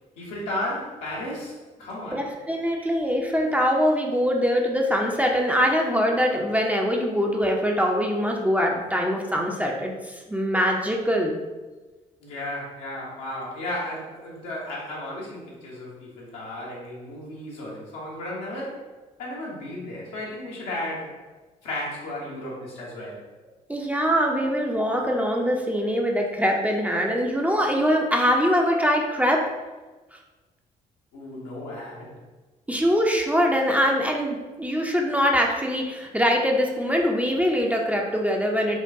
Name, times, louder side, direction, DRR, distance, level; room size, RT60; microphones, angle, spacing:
voice 1, 0.2-2.3 12.2-18.8 19.2-21.2 21.6-23.2 31.1-32.1, left 1 dB, 75° left, -4 dB, 1.0 m, -34 dB
voice 2, 2.1-11.4 23.7-29.4 32.7-38.8, equal, 5° right, 0 dB, 0.5 m, -23 dB
4.4 x 2.2 x 2.7 m, 1.2 s
figure-of-eight pair, 45°, 19 cm